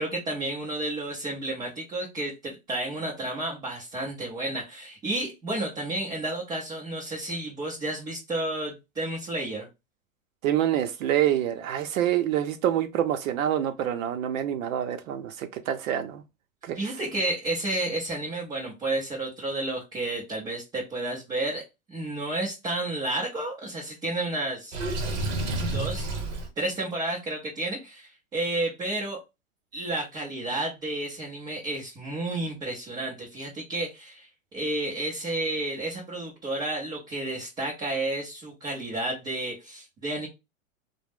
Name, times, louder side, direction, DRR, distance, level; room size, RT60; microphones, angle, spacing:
voice 1, 0.0-9.7 16.7-24.8 25.7-26.1 26.6-29.2 29.7-40.3, right 2 dB, 10° right, 0.3 m, -31 dB
voice 2, 10.4-16.2 16.6-16.8, right 11 dB, 70° right, 0.6 m, -26 dB
Water / Sink (filling or washing), 24.7-26.5, right 2 dB, 45° right, 0.9 m, -29 dB
2.4 x 2.1 x 3.4 m
hypercardioid pair, 130°, 42 cm